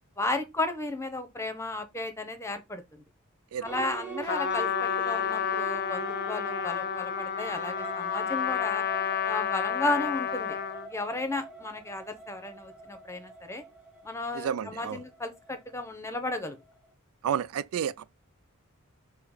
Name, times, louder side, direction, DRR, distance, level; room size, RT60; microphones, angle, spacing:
voice 1, 0.2-3.0 3.6-8.8 9.2-10.6 10.9-13.6 14.0-16.6, left 2 dB, 15° left, 1.0 m, -34 dB
sound 1, 3.6-15.6, right 5 dB, 5° right, 1.5 m, -42 dB
Trumpet, 4.3-10.9, left 9 dB, 45° left, 0.5 m, -30 dB
voice 2, 14.3-15.0 17.2-18.1, right 8 dB, 80° right, 0.3 m, -31 dB
6.9 x 2.9 x 4.9 m
head